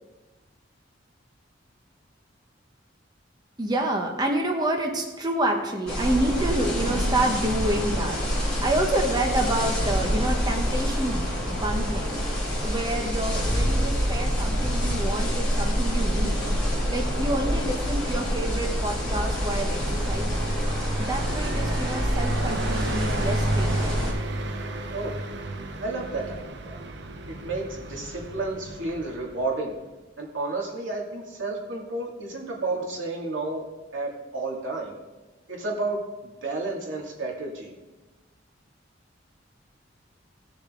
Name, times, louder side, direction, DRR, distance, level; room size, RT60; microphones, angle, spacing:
voice 1, 3.6-12.2 12.6-16.4 16.9-19.8 20.1-20.5 21.0-24.0, right 1 dB, 20° right, 2 dB, 1.0 m, -28 dB
sound 1, 5.9-24.1, equal, 5° left, 3.5 m, -26 dB
Car passing by, 19.1-29.7, right 1 dB, 60° right, 0.8 m, -32 dB
voice 2, 25.8-26.8 27.3-29.7 30.2-33.6 33.9-35.0 35.5-36.0 36.4-37.7, right 2 dB, 85° right, -2 dB, 2.5 m, -31 dB
18.0 x 6.6 x 3.8 m, 1.2 s
head